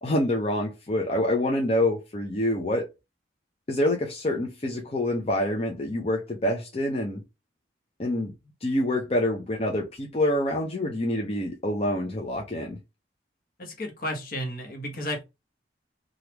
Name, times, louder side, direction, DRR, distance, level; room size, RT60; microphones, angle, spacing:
voice 1, 0.0-2.9 3.7-7.2 8.0-8.3 8.6-12.8, left 1 dB, 35° left, 0.6 m, -26 dB
voice 2, 13.6-15.2, left 1 dB, 50° left, 1.0 m, -33 dB
3.3 x 2.4 x 2.9 m
head